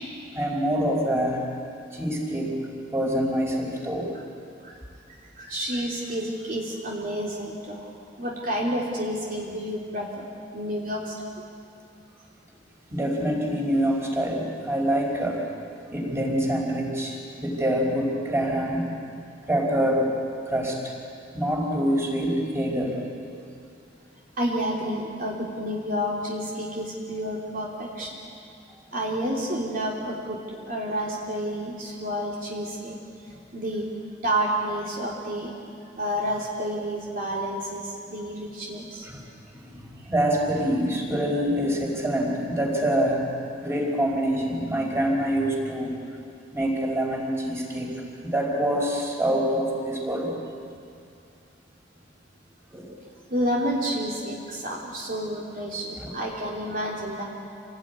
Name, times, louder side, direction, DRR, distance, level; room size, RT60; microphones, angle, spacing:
voice 1, 0.3-1.4 1.9-2.6 2.9-4.1 12.9-15.4 15.9-18.9 19.4-20.1 20.5-20.9 21.3-23.0 39.0-39.2 39.5-43.3 43.6-45.9 46.5-47.9 48.2-50.3 52.7-52.9 56.0-56.1, equal, 15° right, -1 dB, 4.9 m, -25 dB
voice 2, 5.4-10.1 10.5-11.1 24.4-28.2 28.9-30.4 30.7-33.0 33.2-33.9 34.2-35.5 36.0-39.1 53.3-57.2, equal, 50° right, -3 dB, 3.1 m, -30 dB
27.5 x 18.5 x 9.6 m, 2.5 s
head